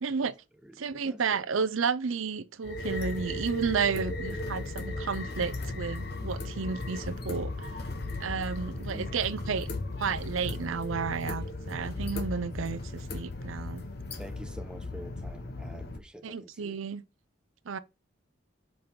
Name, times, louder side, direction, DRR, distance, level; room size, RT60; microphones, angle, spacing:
voice 1, 0.0-0.3 0.8-7.7 8.2-9.7 10.0-13.8 16.2-17.0 17.7-17.8, right 5 dB, 80° right, 0.6 m, -32 dB
voice 2, 0.9-1.4 8.9-9.2 14.2-16.8, equal, 5° right, 0.3 m, -47 dB
sound 1, 2.6-16.0, left 2 dB, 50° left, 1.0 m, -36 dB
5.4 x 5.1 x 4.4 m
head